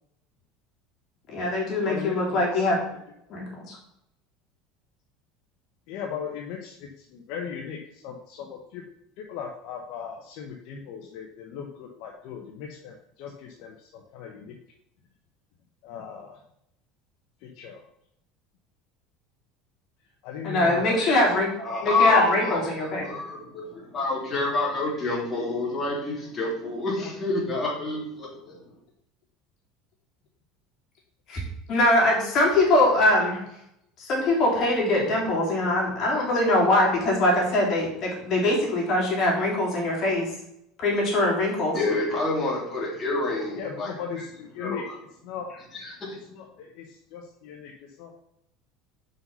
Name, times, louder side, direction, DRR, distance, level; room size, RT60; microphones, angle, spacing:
voice 1, 1.3-2.8 3.3-3.8 20.4-21.5 21.8-23.1 31.3-31.4 31.7-33.4 34.0-40.3 40.8-41.8, left 1 dB, 45° left, -2 dB, 3.3 m, -22 dB
voice 2, 1.8-3.0 5.9-8.8 9.2-14.6 15.8-16.4 17.4-17.8 20.2-21.0 43.5-45.5 46.3-47.7 48.0-48.1, left 7 dB, 65° left, 2 dB, 1.0 m, -38 dB
voice 3, 21.6-28.6 41.7-43.9 44.6-44.9 45.8-46.2, left 3 dB, 25° left, -3 dB, 3.1 m, -28 dB
5.6 x 5.5 x 5.5 m, 0.78 s
supercardioid pair, 125°, 0 cm